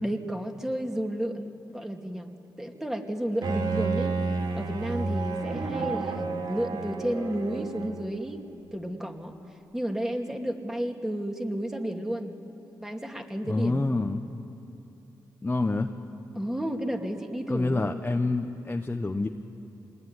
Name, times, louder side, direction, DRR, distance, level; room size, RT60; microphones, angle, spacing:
voice 1, 0.0-2.3 2.6-8.4 8.7-9.3 9.7-12.4 12.8-13.8 16.3-18.0, right 1 dB, 5° right, 3 dB, 2.6 m, -32 dB
Bowed string instrument, 3.4-8.2, right 4 dB, 65° right, 2.5 m, -31 dB
voice 2, 13.4-14.2 15.4-15.9 17.5-19.3, left 2 dB, 20° left, 4 dB, 1.2 m, -27 dB
25.0 x 20.5 x 10.0 m, 2.8 s
cardioid pair, 65°, 8 cm